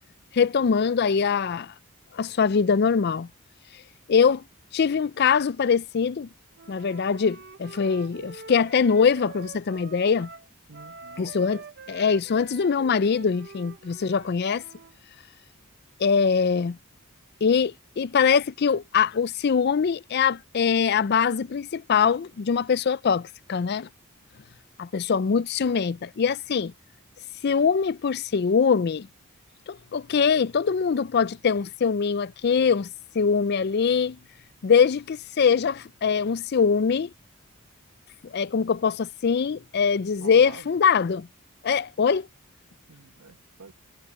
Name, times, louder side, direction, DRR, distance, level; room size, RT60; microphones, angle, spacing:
voice 1, 0.3-1.7 2.1-3.3 4.1-4.4 4.7-6.3 6.7-10.3 11.2-11.6 11.9-14.6 16.0-16.8 17.4-23.9 24.8-26.7 27.4-29.1 29.7-32.9 33.1-34.2 34.6-37.1 38.2-41.3 41.6-42.3, left 6 dB, 50° left, 0.4 m, -23 dB
Wind instrument woodwind instrument, 6.6-15.0, right 4 dB, 45° right, 0.8 m, -46 dB
voice 2, 10.7-11.4 40.2-40.8 42.9-43.7, right 4 dB, 80° right, 1.0 m, -47 dB
head